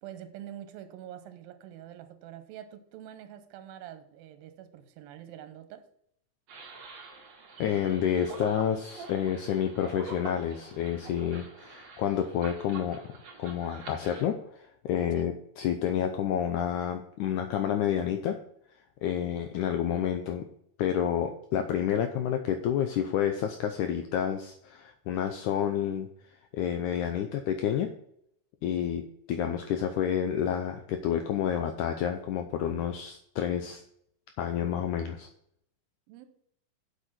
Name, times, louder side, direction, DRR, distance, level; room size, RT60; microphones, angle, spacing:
voice 1, 0.0-5.8 15.2-15.3 36.1-36.3, right 11 dB, 90° right, 10 dB, 2.6 m, -45 dB
sound 1, 6.5-14.2, right 3 dB, 55° right, 2.7 m, -46 dB
voice 2, 7.6-13.0 13.4-18.4 19.0-20.5 20.8-26.1 26.5-27.9 28.6-33.8 34.4-35.3, left 9 dB, 80° left, 6 dB, 1.9 m, -29 dB
7.7 x 6.5 x 6.0 m, 0.70 s
omnidirectional pair, 4.1 m